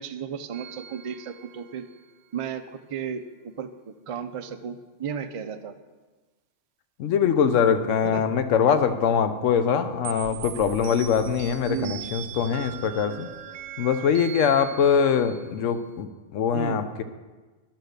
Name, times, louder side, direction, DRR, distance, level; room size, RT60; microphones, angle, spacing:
voice 1, 0.0-1.9 2.3-5.8 8.0-8.2 11.7-12.0 16.5-16.8, right 7 dB, 50° right, 7 dB, 0.4 m, -34 dB
sound 1, 0.5-2.1 10.0-15.8, right 9 dB, 80° right, 0.9 m, -40 dB
voice 2, 7.0-13.3 13.8-17.0, left 7 dB, 85° left, 9 dB, 1.1 m, -23 dB
11.0 x 6.0 x 6.6 m, 1.3 s
omnidirectional pair, 1.3 m